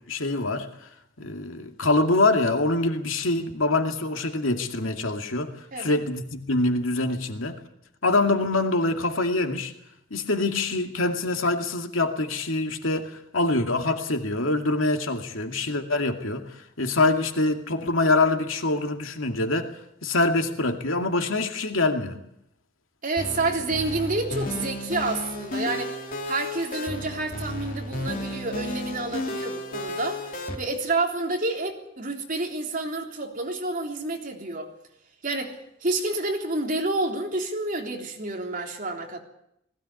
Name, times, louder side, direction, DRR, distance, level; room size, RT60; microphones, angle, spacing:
voice 1, 0.1-0.7 1.2-7.6 8.0-9.7 10.1-16.5 16.8-19.7 20.0-22.2, left 2 dB, 80° left, 2.4 m, -25 dB
voice 2, 23.0-34.7 35.2-39.2, right 2 dB, 40° right, 3.5 m, -29 dB
sound 1, 23.2-30.6, left 1 dB, 45° left, 3.0 m, -33 dB
20.0 x 16.5 x 9.7 m
head